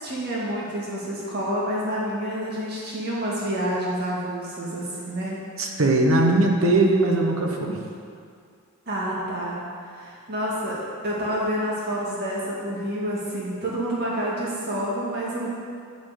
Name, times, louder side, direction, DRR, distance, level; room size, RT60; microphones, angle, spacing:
voice 1, 0.0-5.4 8.9-9.6 9.9-15.5, equal, 45° right, -6 dB, 1.7 m, -28 dB
voice 2, 5.6-7.8, right 2 dB, 65° right, 1 dB, 1.1 m, -20 dB
9.5 x 4.5 x 6.8 m, 2.3 s
head